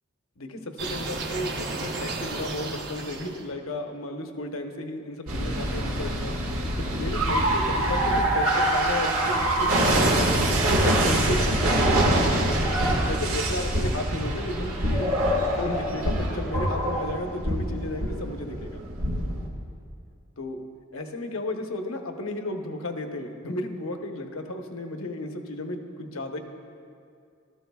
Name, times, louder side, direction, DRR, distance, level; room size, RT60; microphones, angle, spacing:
voice 1, 0.4-6.3 6.7-10.5 10.8-12.0 12.7-18.8 20.4-20.6 20.9-26.4, left 1 dB, 70° left, 4 dB, 1.0 m, -33 dB
sound 1, 0.8-3.5, right 2 dB, 50° right, 1.0 m, -33 dB
sound 2, 5.3-19.5, right 1 dB, 90° right, 1.8 m, -24 dB
17.5 x 13.0 x 2.3 m, 2.4 s
head